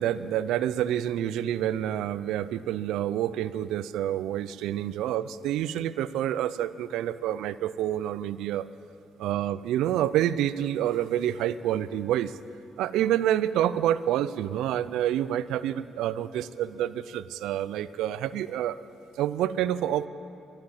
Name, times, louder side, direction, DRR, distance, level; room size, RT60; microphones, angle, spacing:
voice 1, 0.0-8.7 9.2-12.3 12.8-18.8 19.2-20.1, right 11 dB, 90° right, 16 dB, 0.4 m, -28 dB
13.0 x 11.5 x 8.8 m, 2.6 s
cardioid pair, 90°, 0 cm